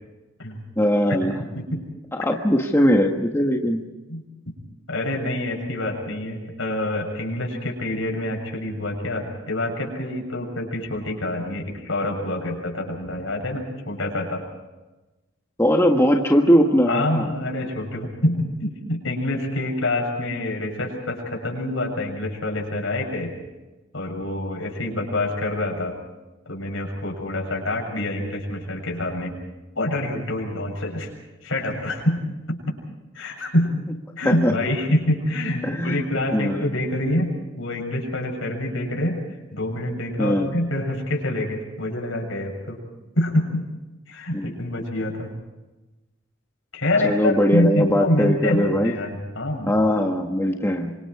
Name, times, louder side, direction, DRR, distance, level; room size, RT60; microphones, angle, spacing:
voice 1, 0.8-1.5 2.1-3.8 15.6-17.3 34.2-34.5 35.6-36.0 36.3-36.7 40.2-40.5 44.3-44.5 47.0-49.0 49.7-51.0, equal, 10° left, 2 dB, 1.5 m, -20 dB
voice 2, 4.9-14.4 16.9-23.3 23.9-25.9 26.5-29.4 29.8-31.1 31.4-32.2 32.5-32.6 33.1-33.8 34.2-39.2 39.5-42.8 43.1-43.7 44.1-45.3 46.7-49.7, left 1 dB, 70° left, 1 dB, 7.2 m, -26 dB
28.0 x 25.0 x 4.8 m, 1.1 s
head